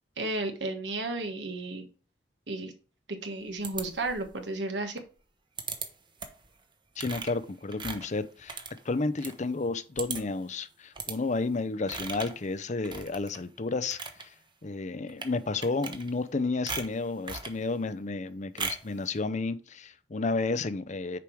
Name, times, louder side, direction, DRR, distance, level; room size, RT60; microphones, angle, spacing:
voice 1, 0.2-1.9 2.5-2.7 3.2-5.0, right 2 dB, 75° right, 1.4 m, -33 dB
sound 1, 3.6-4.3 5.6-5.9 6.2-6.5 7.0-9.4 9.7-9.8 10.0-10.4 11.0-11.2 11.9-12.4 12.8-13.4 13.8-14.2 15.1-15.3 15.6-16.3 16.7-17.6 18.6-18.9, right 4 dB, 25° right, 1.0 m, -38 dB
voice 2, 7.0-14.3 14.6-21.2, left 3 dB, 40° left, 0.6 m, -32 dB
6.9 x 4.9 x 4.7 m
head